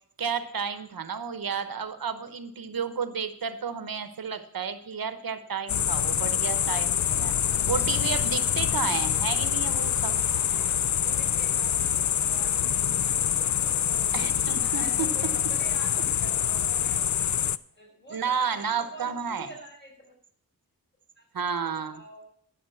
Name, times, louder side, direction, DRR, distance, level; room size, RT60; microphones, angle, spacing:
voice 1, 0.2-10.2 14.1-15.1 18.1-19.5 21.3-22.0, right 6 dB, 75° right, 11 dB, 1.0 m, -32 dB
sound 1, 5.7-17.6, left 9 dB, 55° left, 0.4 m, -25 dB
sound 2, 6.5-11.6, right 1 dB, 5° right, 1.0 m, -49 dB
voice 2, 10.5-14.0 14.5-17.3 17.7-20.2 21.2-22.3, equal, 30° left, -2 dB, 6.4 m, -46 dB
12.5 x 6.4 x 6.9 m, 0.63 s
wide cardioid pair, 75°, 35 cm